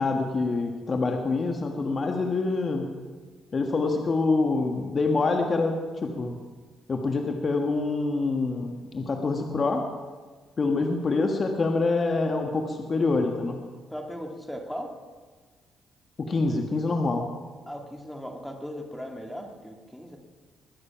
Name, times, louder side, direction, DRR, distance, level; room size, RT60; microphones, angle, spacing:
voice 1, 0.0-2.9 3.5-5.7 6.0-6.4 6.9-9.9 10.6-13.6 16.2-17.2, left 3 dB, 40° left, 3 dB, 1.5 m, -26 dB
voice 2, 13.9-14.9 17.7-20.2, equal, 5° left, 3 dB, 2.1 m, -37 dB
21.5 x 9.5 x 5.8 m, 1.4 s
cardioid pair, 90°, 0 cm